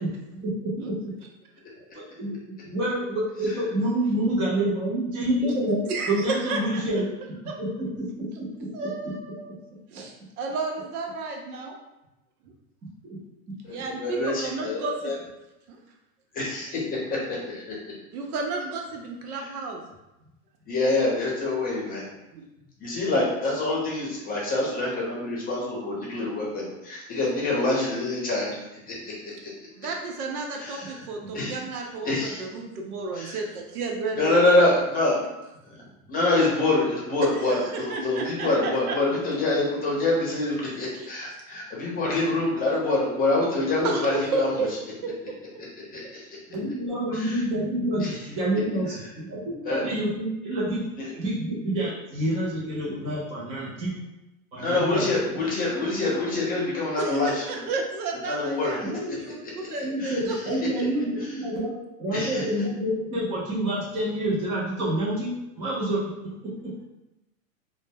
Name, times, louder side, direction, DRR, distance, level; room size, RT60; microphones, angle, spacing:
voice 1, 0.4-1.0 1.8-5.8 6.1-7.1 7.6-8.7 13.0-13.2 13.5-13.6 46.5-50.9 51.1-53.9 54.5-55.4 58.8-66.0 66.4-66.7, right 1 dB, 15° right, -9 dB, 0.3 m, -28 dB
voice 2, 5.9-6.8 7.5-7.6 8.7-9.5 9.9-11.7 13.7-15.1 18.1-19.8 22.3-22.4 29.8-34.4 37.2-39.0 40.9-41.1 43.8-44.7 45.0-45.4 57.0-58.8 59.2-60.3, right 3 dB, 85° right, 1 dB, 0.7 m, -32 dB
voice 3, 13.6-15.1 16.3-17.7 19.3-19.4 20.7-22.0 22.8-28.6 28.9-29.5 30.6-31.0 31.3-32.5 33.1-33.4 34.2-35.2 35.7-35.8 36.1-44.5 45.9-46.2 47.1-47.4 48.0-48.2 49.7-49.9 51.0-51.1 54.6-57.7 58.2-58.8 60.0-60.2 62.1-62.4, left 2 dB, 20° left, -4 dB, 0.7 m, -26 dB
2.1 x 2.0 x 3.3 m, 0.95 s
hypercardioid pair, 115°, 43 cm